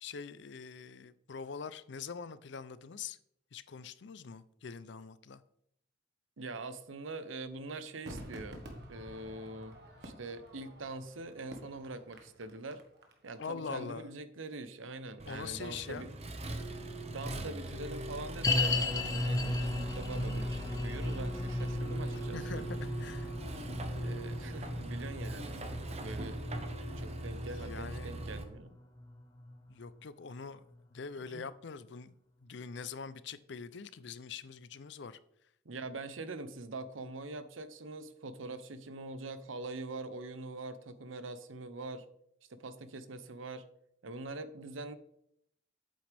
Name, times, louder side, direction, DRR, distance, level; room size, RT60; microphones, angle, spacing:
voice 1, 0.0-3.2 3.5-5.4 13.4-14.1 15.3-16.1 22.3-23.3 27.6-28.1 29.7-32.1 32.4-35.2, left 5 dB, 60° left, 0.5 m, -43 dB
voice 2, 6.4-12.8 13.2-16.1 17.1-22.6 24.0-26.4 27.0-28.7 31.3-31.4 35.6-42.1 42.5-43.6 44.0-44.9, right 2 dB, 85° right, 0.8 m, -44 dB
Crowd / Fireworks, 8.1-13.4 13.7-13.8, right 1 dB, 60° right, 1.4 m, -50 dB
Accelerating revving vroom, 15.2-28.4, right 1 dB, 35° right, 0.9 m, -41 dB
sound 1, 18.4-29.7 30.0-30.1 30.7-30.8, left 2 dB, 15° left, 0.6 m, -36 dB
8.3 x 7.8 x 3.4 m
head